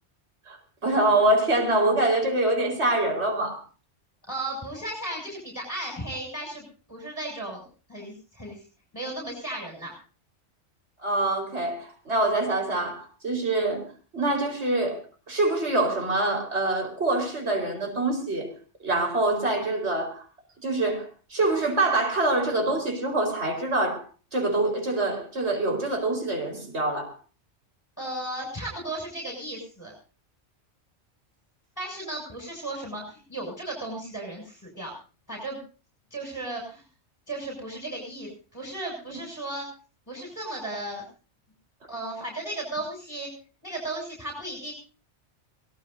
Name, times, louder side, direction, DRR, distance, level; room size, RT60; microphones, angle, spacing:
voice 1, 0.8-3.6 11.0-13.8 14.1-15.0 15.3-18.5 18.8-20.2 20.6-24.0 24.3-27.1 39.1-39.2, right 2 dB, 70° right, 3 dB, 4.8 m, -25 dB
voice 2, 4.3-6.6 6.9-7.6 7.9-8.6 8.9-10.0 28.0-29.9 31.8-34.9 35.3-35.6 36.1-36.8 37.3-39.7 40.1-41.0 41.9-43.3 43.6-44.7, right 1 dB, 15° left, -1 dB, 6.5 m, -35 dB
24.0 x 18.0 x 2.7 m, 0.37 s
omnidirectional pair, 1.2 m